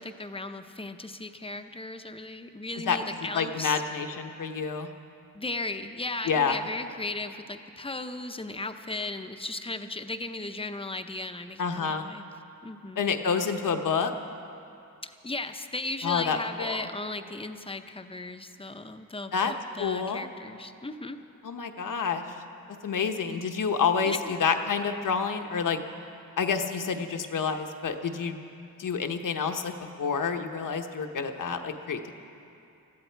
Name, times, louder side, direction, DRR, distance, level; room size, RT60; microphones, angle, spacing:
voice 1, 0.0-3.8 5.3-12.2 12.6-13.1 15.0-21.2 24.0-24.3, left 2 dB, 15° left, 8 dB, 0.7 m, -36 dB
voice 2, 3.3-4.9 6.3-6.6 11.6-12.0 13.0-14.1 16.0-16.8 19.3-19.5 19.8-20.3 21.4-22.2 22.8-25.8 26.4-28.4 28.8-29.7 30.0-32.1, left 6 dB, 65° left, 6 dB, 1.1 m, -28 dB
21.0 x 14.0 x 4.6 m, 2.7 s
cardioid pair, 90°, 34 cm